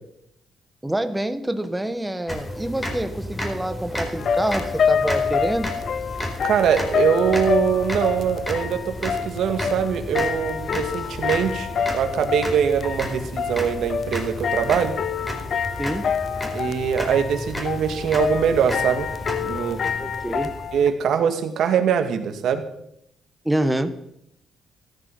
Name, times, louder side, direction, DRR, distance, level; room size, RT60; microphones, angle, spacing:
voice 1, 0.8-5.7 15.8-16.1 20.0-20.5 23.4-24.0, right 1 dB, 10° right, 10 dB, 1.4 m, -26 dB
sound 1, 2.3-21.0, left 1 dB, 20° left, 4.6 m, -33 dB
sound 2, 4.2-20.9, left 7 dB, 55° left, 0.7 m, -27 dB
voice 2, 6.4-11.7 11.9-15.0 16.5-19.1 19.4-19.8 20.7-22.7, right 8 dB, 70° right, 7 dB, 2.1 m, -22 dB
15.5 x 13.0 x 5.6 m, 0.76 s
cardioid pair, 90°, 0 cm